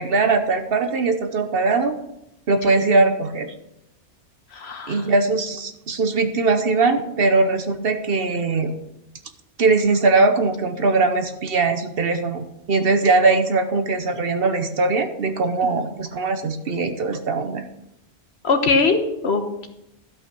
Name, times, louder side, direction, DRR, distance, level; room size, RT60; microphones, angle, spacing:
voice 1, 0.0-2.0 2.5-3.5 4.9-8.8 9.6-17.7, right 3 dB, 60° right, 7 dB, 1.1 m, -20 dB
voice 2, 4.5-5.0 15.7-15.8 18.4-19.7, left 4 dB, 70° left, 6 dB, 1.5 m, -21 dB
12.5 x 5.7 x 6.0 m, 0.86 s
omnidirectional pair, 1.1 m